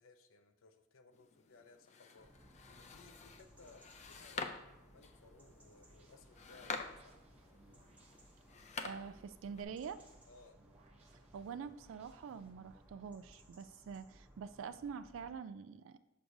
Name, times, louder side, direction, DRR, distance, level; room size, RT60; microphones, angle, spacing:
voice 1, 0.0-7.1 10.3-10.6, left 3 dB, 85° left, 7 dB, 0.6 m, -62 dB
sound 1, 1.1-9.6, left 4 dB, 35° left, 0.4 m, -49 dB
sound 2, 2.2-15.4, right 1 dB, 5° right, 0.7 m, -63 dB
sound 3, 5.1-13.1, right 2 dB, 30° right, 0.9 m, -69 dB
voice 2, 8.8-10.0 11.3-16.0, right 6 dB, 75° right, 12 dB, 0.3 m, -46 dB
6.3 x 5.9 x 2.6 m, 0.97 s
head